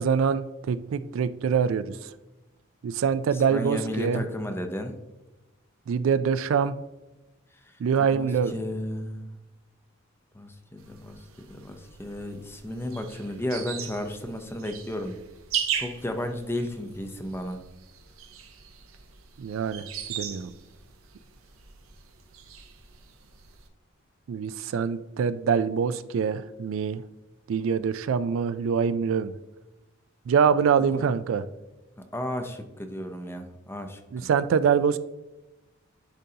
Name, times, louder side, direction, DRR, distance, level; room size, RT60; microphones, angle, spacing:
voice 1, 0.0-2.0 2.8-4.2 5.9-6.8 7.8-8.5 19.4-20.5 24.3-27.0 27.5-29.3 30.3-31.4 34.1-35.0, right 6 dB, 70° right, 14 dB, 0.3 m, -24 dB
voice 2, 3.3-4.9 8.0-9.3 10.3-11.2 11.5-15.2 15.7-17.6 30.9-31.0 32.1-34.3, left 1 dB, 10° left, 6 dB, 0.6 m, -33 dB
sound 1, 10.8-23.7, right 8 dB, 85° right, 0.8 m, -39 dB
10.5 x 3.8 x 2.8 m, 1.0 s
head